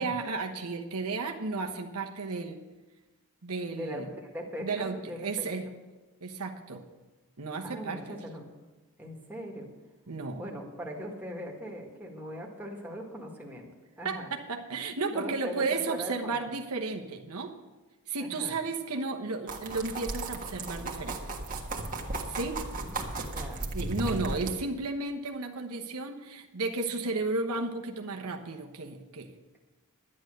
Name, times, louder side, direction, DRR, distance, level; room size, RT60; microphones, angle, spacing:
voice 1, 0.0-2.6 3.4-4.1 4.6-5.7 6.2-6.8 7.4-8.0 10.1-10.5 14.0-17.5 18.1-21.2 22.3-22.6 23.7-29.3, right 3 dB, 80° right, 3 dB, 1.1 m, -33 dB
voice 2, 3.7-4.1 4.3-5.4 7.6-8.5 9.0-9.7 10.4-13.7 14.0-14.3 15.1-16.5 18.2-18.6 22.8-23.6, equal, 10° right, -2 dB, 1.9 m, -40 dB
sound 1, 19.5-24.5, right 2 dB, 40° right, 1.5 m, -35 dB
11.5 x 9.9 x 6.6 m, 1.2 s
head